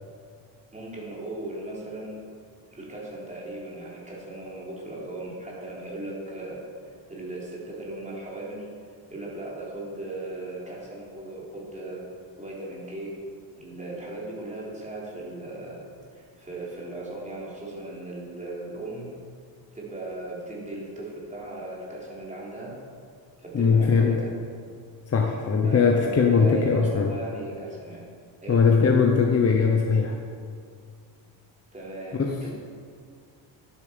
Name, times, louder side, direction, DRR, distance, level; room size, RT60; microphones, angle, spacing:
voice 1, 0.7-2.2 2.7-6.6 7.1-8.6 9.1-12.1 12.4-13.1 13.6-15.8 16.1-19.1 19.7-22.8 23.4-24.3 25.6-28.0 28.4-28.6 31.7-32.5, right 2 dB, 15° right, -5 dB, 3.5 m, -37 dB
voice 2, 23.5-24.2 25.1-27.1 28.5-30.1 32.1-32.5, left 5 dB, 30° left, 1 dB, 0.9 m, -20 dB
12.5 x 10.5 x 5.2 m, 2.2 s
cardioid pair, 155°, 47 cm